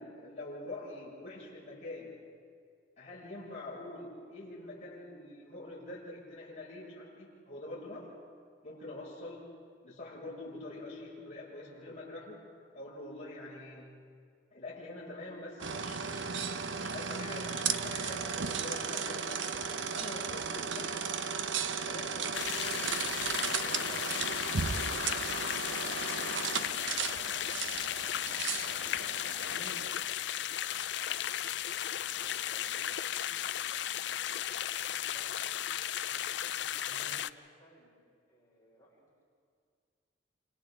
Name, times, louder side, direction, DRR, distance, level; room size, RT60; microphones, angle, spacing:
voice 1, 0.0-2.2 3.0-8.2 8.6-9.4 9.8-12.4 12.7-14.0 14.5-20.8 21.8-23.2 23.5-24.1 29.4-30.0 36.9-37.2, left 2 dB, 35° left, -8 dB, 6.7 m, -45 dB
sound 1, 15.6-30.0, right 6 dB, 75° right, 0.8 m, -35 dB
sound 2, 22.3-37.3, left 11 dB, 65° left, 0.4 m, -35 dB
voice 2, 29.4-33.9 35.0-35.7 36.3-38.0 38.3-39.1, equal, 15° left, -6 dB, 5.7 m, -62 dB
28.5 x 28.0 x 3.9 m, 2.1 s
head